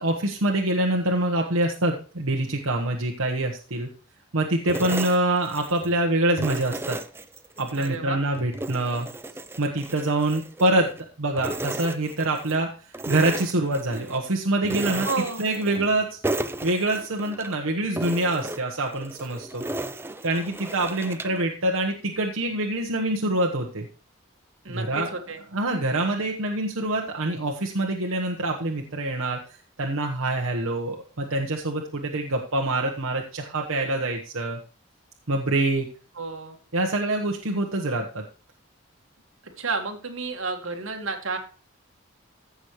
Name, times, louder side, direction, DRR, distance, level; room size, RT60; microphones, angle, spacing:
voice 1, 0.0-3.9 4.3-7.0 7.6-9.1 9.6-10.9 11.2-16.2 16.6-19.6 20.2-23.9 24.7-25.1 25.5-34.6 35.3-35.9 36.7-38.2, right 2 dB, 90° right, 1 dB, 1.2 m, -25 dB
sound 1, 4.7-6.0 6.4-7.9 8.3-11.0 11.4-12.6 12.9-14.2 14.6-16.0 16.2-17.6 18.0-21.4, right 2 dB, 10° right, 0.5 m, -34 dB
voice 2, 7.8-8.2 15.0-15.4 24.6-25.4 36.2-36.6 39.6-41.4, right 4 dB, 75° right, 4 dB, 1.9 m, -31 dB
15.0 x 6.3 x 3.1 m, 0.38 s
head